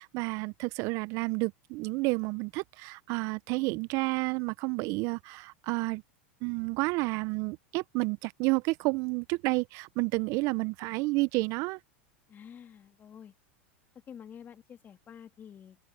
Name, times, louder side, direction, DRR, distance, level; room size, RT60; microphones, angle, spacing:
voice 1, 0.0-6.0 6.4-11.8, right 25 dB, 50° right, 0.6 m, -30 dB
voice 2, 12.3-13.3 14.1-15.8, left 8 dB, 30° left, 2.9 m, -49 dB
open air
hypercardioid pair, 100°, 6 cm